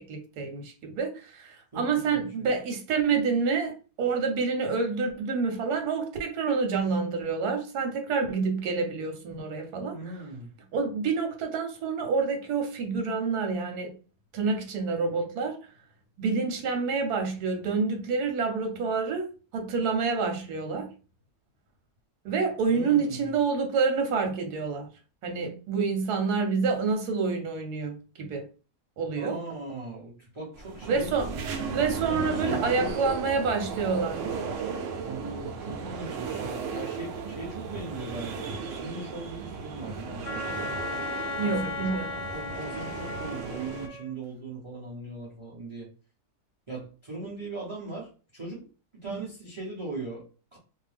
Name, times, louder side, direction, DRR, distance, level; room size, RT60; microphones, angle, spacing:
voice 1, 0.0-10.2 10.7-13.9 14.3-15.6 16.2-19.3 19.5-20.9 22.2-24.9 25.2-28.5 29.0-29.4 30.8-31.3 31.7-34.2 41.4-42.1 49.0-49.2, right 5 dB, 85° right, 1.3 m, -28 dB
voice 2, 1.7-2.5 9.9-10.5 22.7-23.3 29.1-31.5 32.1-32.9 35.0-40.6 41.4-42.0 42.3-45.9 46.7-48.7 49.0-50.6, right 2 dB, 25° right, 0.7 m, -39 dB
sound 1, 30.6-43.9, right 5 dB, 70° right, 0.8 m, -35 dB
Wind instrument woodwind instrument, 40.2-44.1, left 3 dB, 70° left, 0.6 m, -36 dB
2.7 x 2.2 x 3.3 m
omnidirectional pair, 1.6 m